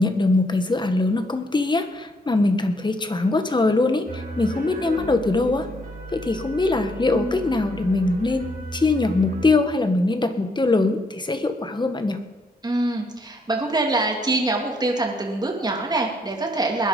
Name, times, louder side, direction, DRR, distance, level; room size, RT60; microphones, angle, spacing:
voice 1, 0.0-5.7 6.1-12.2, left 2 dB, 25° left, 8 dB, 1.7 m, -22 dB
sound 1, 4.1-9.5, right 2 dB, 55° right, 3.3 m, -34 dB
voice 2, 12.6-16.9, right 2 dB, 25° right, 0 dB, 3.1 m, -24 dB
20.5 x 10.5 x 5.4 m, 1.2 s
cardioid pair, 90°, 17 cm